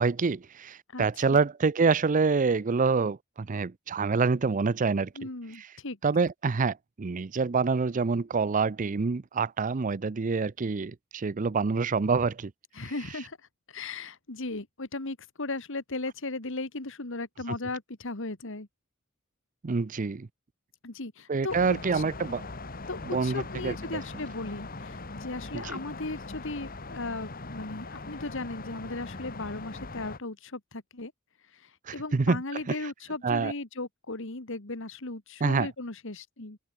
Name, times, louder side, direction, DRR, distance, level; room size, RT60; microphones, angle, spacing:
voice 1, 0.0-5.1 5.6-5.7 6.0-12.5 19.6-20.3 21.3-22.4 23.0-23.8 25.5-25.8 31.9-32.4 32.7-32.8 33.2-33.5 35.4-35.7, right 4 dB, 40° right, 0.5 m, -26 dB
voice 2, 5.2-6.0 12.7-13.4 13.7-18.7 20.8-22.0 22.9-31.1 31.5-36.6, left 2 dB, 65° left, 2.0 m, -37 dB
sound 1, 21.5-30.2, left 3 dB, 45° left, 2.2 m, -41 dB
head